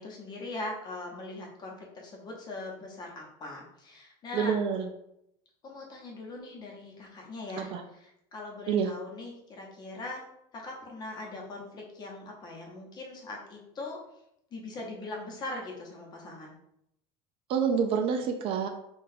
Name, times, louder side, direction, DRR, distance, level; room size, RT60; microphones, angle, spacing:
voice 1, 0.0-4.6 5.6-10.2 10.5-14.0 14.5-16.5, left 2 dB, 30° left, -1 dB, 0.8 m, -41 dB
voice 2, 4.3-4.9 7.6-7.8 8.7-8.9 17.5-18.7, right 6 dB, 45° right, 4 dB, 0.4 m, -27 dB
3.8 x 2.4 x 2.6 m, 0.78 s
cardioid pair, 140°, 13 cm